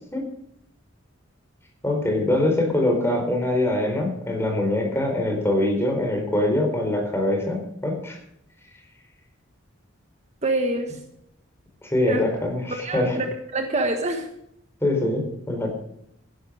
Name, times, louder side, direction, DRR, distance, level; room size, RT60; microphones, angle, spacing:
voice 1, 1.8-8.2 11.8-13.2 14.8-15.7, left 1 dB, 15° left, 3 dB, 4.3 m, -23 dB
voice 2, 10.4-11.0 12.1-12.2 12.8-14.3, right 2 dB, 35° right, 4 dB, 1.5 m, -26 dB
15.5 x 11.5 x 5.2 m, 0.73 s
head